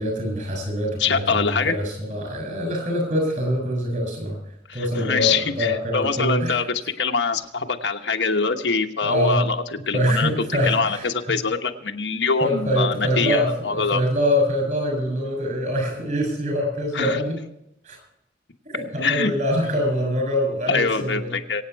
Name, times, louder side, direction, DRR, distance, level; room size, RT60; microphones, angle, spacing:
voice 1, 0.0-4.4 4.7-6.6 9.0-9.4 9.9-11.4 12.4-17.4 17.8-18.0 18.7-21.3, equal, 45° right, 2 dB, 7.1 m, -24 dB
voice 2, 1.0-1.8 4.7-9.6 9.9-10.3 10.6-14.0 16.9-17.2 19.0-19.3 20.7-21.6, left 5 dB, 85° left, 4 dB, 1.2 m, -24 dB
23.5 x 8.8 x 4.6 m, 0.77 s
head